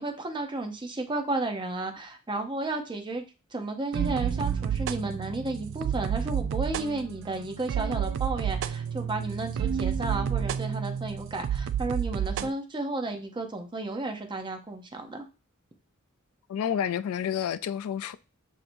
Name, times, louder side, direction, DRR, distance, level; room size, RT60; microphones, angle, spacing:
voice 1, 0.0-3.2 3.5-15.3, right 2 dB, 20° right, 0.6 m, -33 dB
sound 1, 3.9-12.5, right 8 dB, 60° right, 0.3 m, -30 dB
voice 2, 16.5-18.2, left 9 dB, 80° left, 0.3 m, -29 dB
6.0 x 2.7 x 2.6 m
head